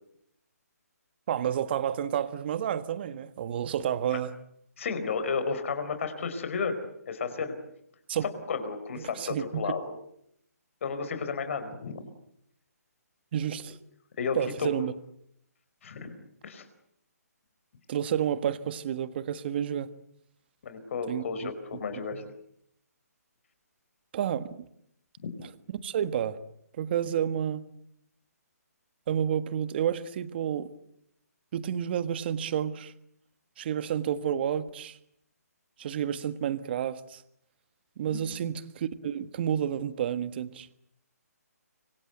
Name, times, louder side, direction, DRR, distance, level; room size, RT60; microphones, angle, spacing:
voice 1, 1.3-4.3 8.1-8.2 9.1-9.6 13.3-13.8 14.3-14.9 17.9-19.9 21.1-21.5 22.1-22.2 24.1-24.6 25.4-25.5 25.8-26.4 26.8-27.6 29.1-30.7 31.5-32.9 33.6-35.0 35.8-37.2 38.0-40.7, right 9 dB, 40° right, 13 dB, 1.6 m, -30 dB
voice 2, 4.8-7.6 8.5-9.9 10.8-12.1 14.2-14.7 15.8-16.1 16.4-16.6 20.6-22.2 25.2-25.3 38.1-38.2, left 5 dB, 50° left, 9 dB, 4.6 m, -32 dB
26.0 x 25.0 x 8.1 m, 0.75 s
hypercardioid pair, 155°, 9 cm